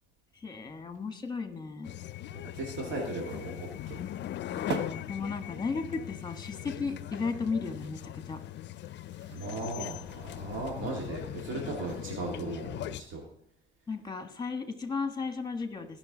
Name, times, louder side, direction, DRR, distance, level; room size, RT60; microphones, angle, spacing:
voice 1, 0.4-1.9 4.5-8.0 8.3-8.4 13.9-16.0, left 4 dB, 20° left, 7 dB, 1.4 m, -35 dB
sound 1, 1.8-13.0, left 13 dB, 65° left, 0.4 m, -40 dB
voice 2, 2.5-4.0 9.3-13.2, right 2 dB, 85° right, -1 dB, 2.0 m, -37 dB
sound 2, 3.3-12.2, right 5 dB, 60° right, 1.2 m, -46 dB
16.0 x 5.7 x 3.9 m, 0.76 s
cardioid pair, 90°, 20 cm